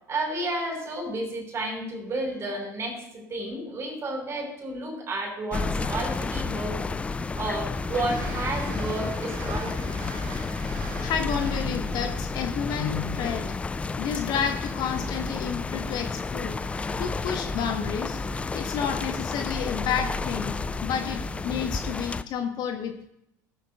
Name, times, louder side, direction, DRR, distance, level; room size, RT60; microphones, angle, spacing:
voice 1, 0.1-6.9 7.4-9.9, right 2 dB, 25° right, 2 dB, 4.7 m, -32 dB
sound 1, 5.5-22.2, left 3 dB, 10° left, 0.4 m, -31 dB
Train, 7.0-14.1, right 4 dB, 55° right, 3.3 m, -44 dB
voice 2, 11.0-13.5 14.0-16.6 17.0-18.2 18.5-23.1, left 7 dB, 40° left, 5 dB, 1.1 m, -30 dB
18.0 x 13.0 x 2.3 m, 0.81 s
figure-of-eight pair, 75°, 10 cm